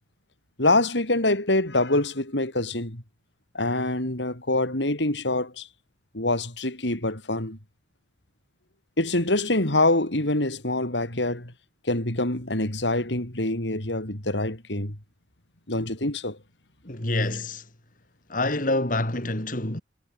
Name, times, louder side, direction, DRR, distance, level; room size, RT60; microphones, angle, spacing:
voice 1, 0.6-3.0 3.5-5.7 6.1-7.6 9.0-11.5 11.9-15.0 15.7-16.4, left 2 dB, 85° left, 5.2 m, -25 dB
voice 2, 16.8-17.7 18.3-19.8, left 2 dB, 50° left, 3.6 m, -26 dB
head